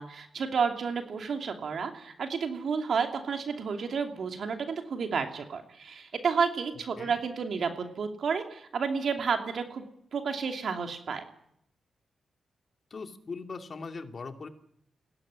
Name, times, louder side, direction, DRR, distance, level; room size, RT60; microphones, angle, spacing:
voice 1, 0.0-9.8 10.1-11.3, right 5 dB, 65° right, 5 dB, 2.7 m, -31 dB
voice 2, 12.9-14.5, left 4 dB, 55° left, 6 dB, 2.5 m, -40 dB
20.5 x 17.0 x 9.9 m, 0.75 s
supercardioid pair, 45°, 0 cm